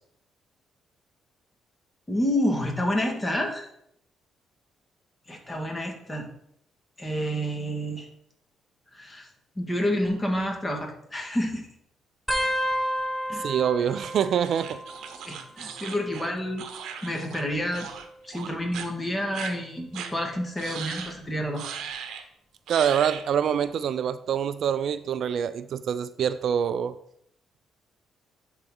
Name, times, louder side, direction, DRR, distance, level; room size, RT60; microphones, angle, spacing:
voice 1, 2.1-3.7 5.3-6.3 7.0-8.1 8.9-9.3 9.6-11.7 13.3-13.5 15.2-16.7 17.0-17.9 18.2-21.6, equal, 20° left, 2 dB, 1.8 m, -29 dB
sound 1, 12.3-15.5 15.7-16.3 17.3-18.8 19.4-19.8 21.0-21.3 22.8-22.9, equal, ahead, 1.2 m, -32 dB
voice 2, 13.4-14.8 22.7-27.0, right 8 dB, 65° right, 14 dB, 0.3 m, -25 dB
sound 2, 14.4-17.4 17.7-18.1 18.3-18.9 19.3-19.5 19.9-20.1 20.6-21.1 21.6-22.2 22.7-23.3, right 7 dB, 80° right, 0.8 m, -38 dB
11.5 x 4.0 x 3.8 m, 0.73 s
cardioid pair, 90°, 0 cm